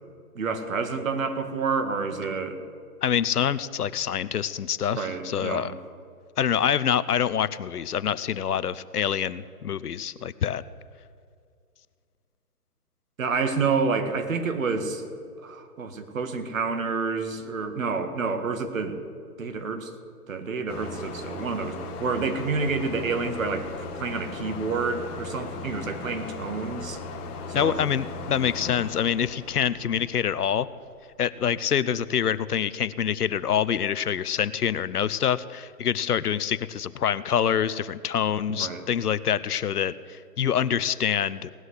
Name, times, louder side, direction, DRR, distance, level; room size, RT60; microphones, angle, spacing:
voice 1, 0.4-2.6 4.9-5.8 13.2-15.0 15.4-19.0 19.4-19.9 20.3-23.7 24.0-27.0 27.5-27.8 38.5-38.8, right 4 dB, 60° right, 8 dB, 1.8 m, -29 dB
voice 2, 3.0-5.7 6.4-10.6 27.5-30.7 31.2-41.5, left 8 dB, 75° left, 16 dB, 0.8 m, -26 dB
sound 1, 20.7-30.9, left 3 dB, 10° left, 0.9 m, -38 dB
18.0 x 6.4 x 9.6 m, 2.3 s
hypercardioid pair, 145°, 46 cm